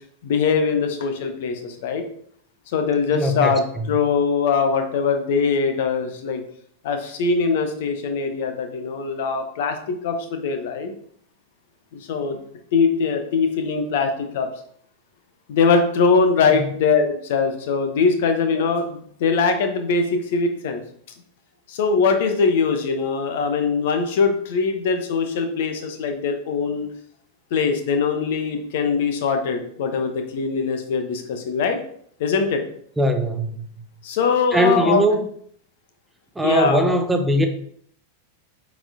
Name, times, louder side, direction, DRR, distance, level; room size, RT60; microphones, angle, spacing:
voice 1, 0.2-2.0 2.7-6.4 6.8-10.9 11.9-12.4 12.7-14.5 15.5-20.8 21.7-26.9 27.5-31.8 32.2-32.6 34.0-35.0 36.4-36.8, left 5 dB, 55° left, 6 dB, 1.0 m, -22 dB
voice 2, 3.1-3.5 16.5-16.7 33.0-33.7 34.5-35.2 36.4-37.5, right 1 dB, 5° right, 5 dB, 0.7 m, -20 dB
8.9 x 4.2 x 2.8 m, 0.62 s
figure-of-eight pair, 90°, 0 cm